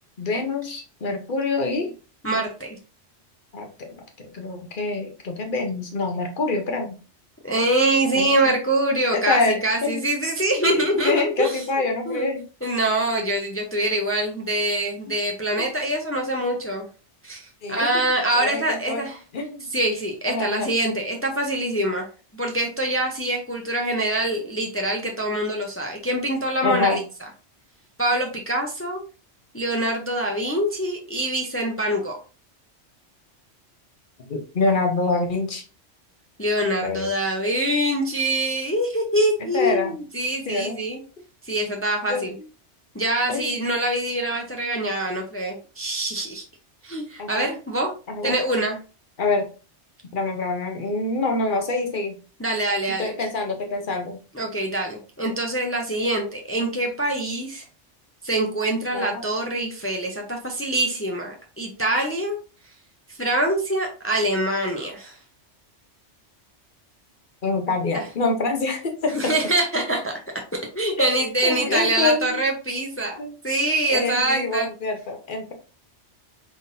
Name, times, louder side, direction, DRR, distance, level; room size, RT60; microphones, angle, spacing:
voice 1, 0.2-1.9 3.5-6.9 8.1-8.5 9.1-10.0 10.6-12.4 15.6-15.7 17.6-17.9 18.3-19.0 19.3-19.7 20.3-20.7 26.6-27.0 34.3-35.6 36.8-37.1 39.5-40.0 40.5-40.8 42.1-42.3 43.3-43.5 47.2-47.5 48.1-48.3 49.2-49.5 50.1-52.2 53.0-54.2 58.9-59.2 67.4-69.3 71.0-72.4 73.2-73.4 73.9-75.5, left 3 dB, 50° left, 4 dB, 1.0 m, -26 dB
voice 2, 2.2-2.8 7.4-11.6 12.1-12.3 12.6-16.9 17.2-19.2 19.7-22.1 22.3-27.0 28.0-29.0 29.5-32.2 36.4-41.0 41.4-42.3 42.9-46.4 46.8-47.9 48.2-48.8 52.4-53.1 54.3-57.6 58.2-62.4 63.2-65.2 67.9-68.0 69.1-70.1 70.5-73.1 73.4-74.7, right 1 dB, 15° left, 2 dB, 0.5 m, -24 dB
3.8 x 3.7 x 2.6 m, 0.34 s
omnidirectional pair, 1.2 m